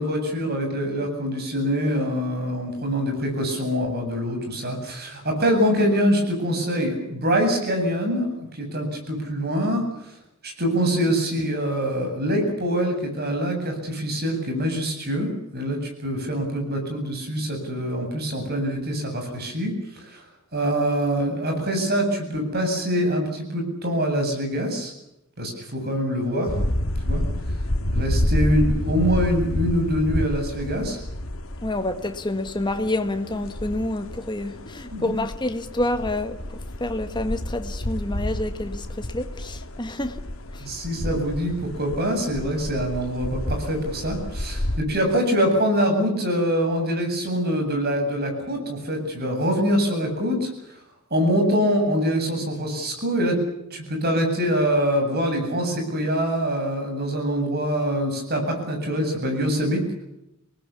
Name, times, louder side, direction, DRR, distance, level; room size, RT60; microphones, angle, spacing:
voice 1, 0.0-9.8 10.4-20.2 20.5-24.9 25.4-26.5 27.0-27.2 27.9-31.0 34.9-35.1 40.6-50.5 51.1-53.4 53.7-59.8, equal, 50° right, 7.9 m, -24 dB
sound 1, 26.5-44.8, left 1 dB, 70° left, 2.0 m, -29 dB
voice 2, 31.6-40.2 40.5-40.7, left 1 dB, 20° left, 1.8 m, -28 dB
27.5 x 19.5 x 7.2 m
head